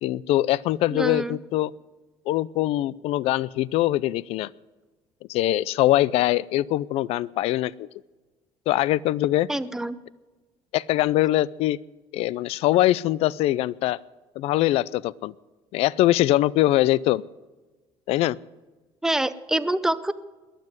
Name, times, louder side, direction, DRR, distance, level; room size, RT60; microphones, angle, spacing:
voice 1, 0.0-1.7 2.3-4.5 5.3-7.9 8.7-9.5 10.7-11.8 12.1-14.0 14.4-15.3 15.7-17.2 18.1-18.4, left 15 dB, 70° left, 22 dB, 0.5 m, -22 dB
voice 2, 0.9-1.4 9.5-10.0 19.0-20.1, right 1 dB, 5° right, 13 dB, 0.6 m, -25 dB
21.5 x 7.6 x 7.9 m, 1.2 s
cardioid pair, 135°, 11 cm